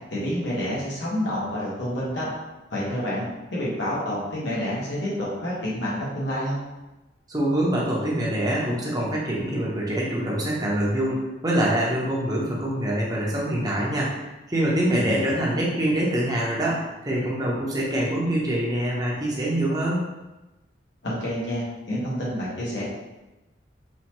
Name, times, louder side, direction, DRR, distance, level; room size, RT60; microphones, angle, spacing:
voice 1, 0.1-2.3 2.7-3.3 3.5-6.6 14.9-15.3 21.0-22.8, equal, 80° left, -7 dB, 1.3 m, -28 dB
voice 2, 7.3-20.0, right 1 dB, 20° right, -4 dB, 0.8 m, -25 dB
4.1 x 2.7 x 3.0 m, 1.0 s
head